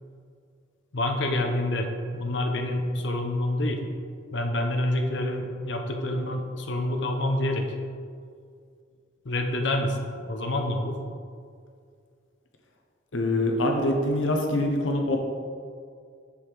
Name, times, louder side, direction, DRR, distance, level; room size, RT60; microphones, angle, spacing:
voice 1, 0.9-3.8 4.3-7.7 9.2-11.0, left 1 dB, 65° left, 4 dB, 0.8 m, -27 dB
voice 2, 13.1-15.2, left 1 dB, 85° left, 2 dB, 1.0 m, -24 dB
6.7 x 5.5 x 4.6 m, 2.2 s
head